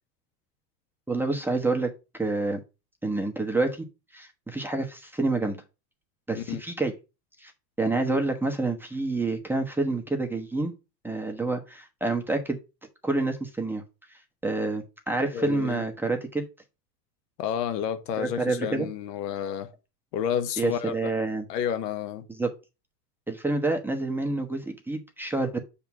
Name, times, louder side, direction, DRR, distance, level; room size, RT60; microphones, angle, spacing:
voice 1, 1.1-2.6 3.0-3.9 4.1-5.6 6.3-6.9 7.4-7.5 7.8-10.7 11.0-12.6 13.0-13.8 14.4-16.5 18.2-18.9 20.6-21.4 22.3-22.5 23.3-25.6, right 2 dB, 5° right, 1.1 m, -28 dB
voice 2, 15.3-15.8 17.4-19.7 20.1-21.1 21.5-22.2, left 9 dB, 75° left, 1.3 m, -30 dB
6.8 x 3.6 x 6.0 m
supercardioid pair, 115°, 50 cm